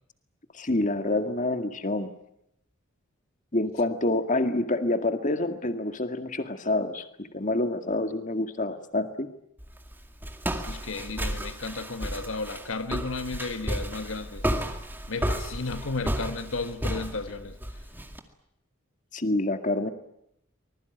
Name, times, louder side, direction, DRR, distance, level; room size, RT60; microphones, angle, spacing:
voice 1, 0.5-2.1 3.5-9.3 19.1-19.9, left 2 dB, 40° left, 8 dB, 2.0 m, -27 dB
Walk footsteps, 9.6-18.2, right 1 dB, 10° right, 2.1 m, -32 dB
voice 2, 10.6-14.4 15.1-17.6, left 3 dB, 75° left, 9 dB, 1.5 m, -33 dB
25.0 x 21.0 x 9.3 m, 0.78 s
head